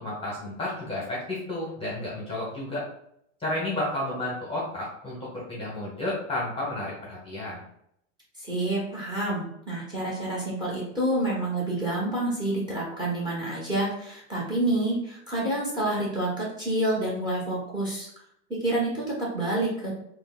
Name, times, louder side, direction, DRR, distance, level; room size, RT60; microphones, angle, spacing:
voice 1, 0.0-2.8 3.4-7.6, left 1 dB, 15° left, -5 dB, 1.0 m, -32 dB
voice 2, 8.4-18.1 18.6-19.9, right 1 dB, 10° right, -4 dB, 1.1 m, -28 dB
3.7 x 2.2 x 2.4 m, 0.72 s
supercardioid pair, 115°, 39 cm